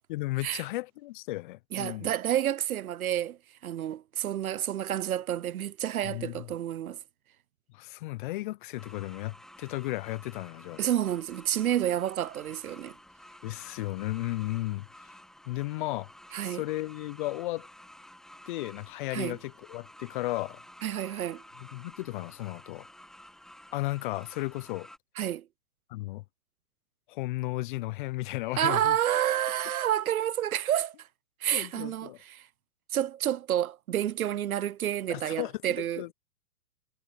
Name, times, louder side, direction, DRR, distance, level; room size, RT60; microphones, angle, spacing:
voice 1, 0.1-2.1 6.0-6.5 7.7-10.8 13.4-14.9 15.5-16.1 16.4-17.7 18.5-20.6 21.6-22.9 23.7-24.9 25.9-26.2 27.1-29.0 31.5-32.2 35.1-35.5 36.0-36.1, left 19 dB, 35° left, 0.6 m, -34 dB
voice 2, 1.7-3.4 3.6-7.0 10.8-12.9 16.3-16.6 19.1-19.4 20.8-21.4 25.2-25.5 28.6-30.9 31.4-32.4 32.9-36.0, right 11 dB, 80° right, 0.7 m, -29 dB
sound 1, 8.8-25.0, left 1 dB, ahead, 1.3 m, -52 dB
hypercardioid pair, 120°, 43 cm